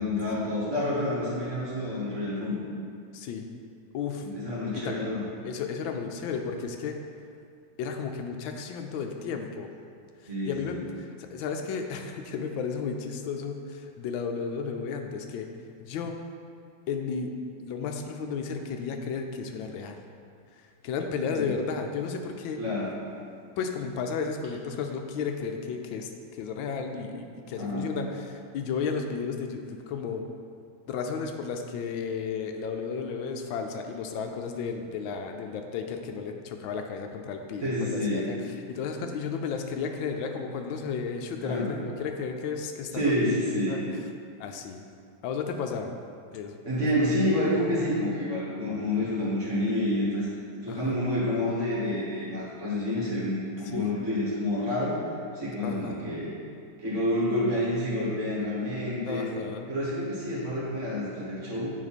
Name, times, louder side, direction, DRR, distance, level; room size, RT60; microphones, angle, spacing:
voice 1, 0.0-2.6 4.2-5.2 10.3-10.8 21.3-21.5 22.6-23.0 27.5-27.9 37.6-38.3 41.4-41.7 42.9-43.9 46.6-50.3 50.6-55.0 55.3-56.3 56.8-59.2 59.7-61.7, left 1 dB, 40° right, -8 dB, 1.6 m, -28 dB
voice 2, 3.1-3.4 3.9-4.2 4.7-4.9 5.4-7.0 7.8-9.7 10.4-15.5 15.8-16.2 16.9-17.3 17.6-20.0 20.6-22.6 23.6-30.2 30.9-38.4 38.7-43.1 43.6-43.8 44.4-44.8 45.2-45.9 46.3-46.5 50.7-50.9 53.7-53.9 55.6-56.0 59.1-59.7, left 5 dB, 80° left, 5 dB, 1.3 m, -33 dB
9.2 x 3.4 x 4.2 m, 2.4 s
omnidirectional pair, 2.2 m